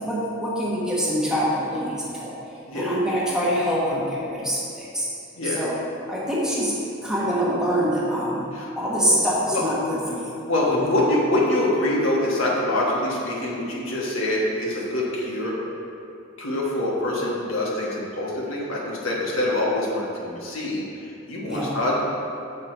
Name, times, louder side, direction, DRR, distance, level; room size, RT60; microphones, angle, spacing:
voice 1, 0.0-2.3 2.7-5.1 5.5-5.7 6.1-6.7 7.0-8.4 8.8-10.3 10.7-10.9 21.5-21.7, equal, 5° right, -7 dB, 1.1 m, -25 dB
voice 2, 10.5-15.5 16.4-20.8 21.3-22.0, left 1 dB, 70° left, -4 dB, 1.3 m, -25 dB
7.0 x 4.6 x 4.4 m, 2.7 s
head